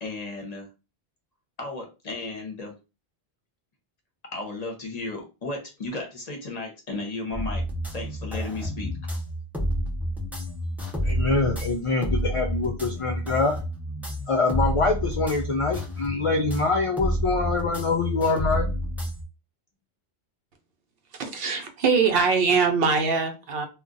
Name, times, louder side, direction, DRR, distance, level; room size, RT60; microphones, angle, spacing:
voice 1, 0.0-0.7 1.6-2.7 4.3-7.6 7.9-8.9, left 3 dB, 45° left, 2 dB, 0.8 m, -34 dB
sound 1, 7.3-19.2, equal, ahead, 0.5 m, -30 dB
voice 2, 11.0-13.6 14.3-18.7, left 3 dB, 60° left, 3 dB, 0.3 m, -25 dB
voice 3, 21.1-23.7, right 5 dB, 65° right, 5 dB, 0.8 m, -22 dB
2.4 x 2.2 x 3.8 m, 0.29 s
omnidirectional pair, 1.1 m